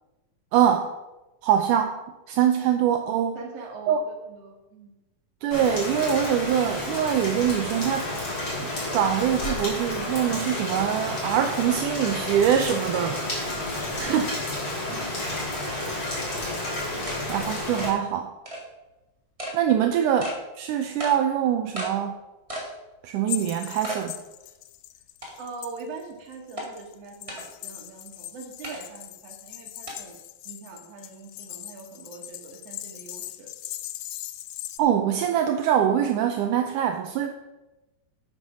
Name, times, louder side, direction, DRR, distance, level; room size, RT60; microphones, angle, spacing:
voice 1, 0.5-0.9 1.4-1.9 2.3-3.4 3.9-4.0 5.4-8.1 8.6-13.2 14.0-14.3 17.3-18.3 19.5-20.3 20.6-22.1 23.0-24.2 34.8-37.3, right 9 dB, 80° right, 5 dB, 2.1 m, -23 dB
voice 2, 3.3-4.9 14.1-14.3 14.9-15.1 16.9-17.3 25.4-30.2 30.4-33.5, right 4 dB, 55° right, 1 dB, 2.7 m, -42 dB
Rain, 5.5-17.9, left 1 dB, 35° left, 4.5 m, -31 dB
sound 1, 15.8-15.9 16.3-16.4 17.1-17.2 17.8-18.0 18.5-18.6 19.4-19.6 20.2-20.4 21.0-21.2 21.8-21.9 22.5-22.7 23.2-23.3 23.8-24.0 24.5-24.6 25.2-25.6 26.6-26.7 27.3-27.4 28.6-28.8 29.9-30.0, right 1 dB, 15° right, 1.6 m, -34 dB
sound 2, 23.3-26.0 26.3-34.8, left 15 dB, 90° left, 2.2 m, -40 dB
8.7 x 7.8 x 6.1 m, 1.0 s
omnidirectional pair, 3.8 m